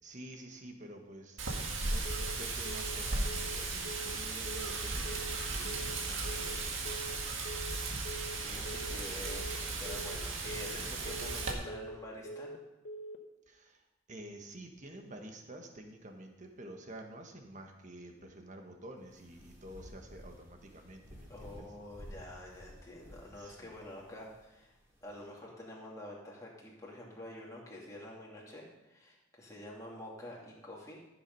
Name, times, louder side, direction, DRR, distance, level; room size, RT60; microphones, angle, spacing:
voice 1, 0.0-1.4 1.8-6.9 13.5-13.8 14.1-21.6 23.4-23.7, right 1 dB, 35° right, 3 dB, 1.5 m, -49 dB
Wind, 1.4-11.5, right 3 dB, 75° right, 1.8 m, -36 dB
Telephone, 2.0-2.4 2.6-3.0 3.2-3.6 3.8-4.2 4.4-4.8 5.0-5.4 5.6-6.0 6.2-6.6 6.8-7.2 7.4-7.8 8.0-8.4 8.6-9.0 9.2-9.6 9.8-10.2 10.4-10.8 11.0-11.4 11.6-12.0 12.2-12.6 12.8-13.2, right 1 dB, 60° left, 1.1 m, -44 dB
voice 2, 8.4-12.5 21.3-31.0, left 1 dB, 15° left, -4 dB, 2.7 m, -48 dB
sound 1, 19.0-25.4, equal, 15° right, 3.2 m, -54 dB
14.0 x 7.4 x 5.5 m, 0.98 s
head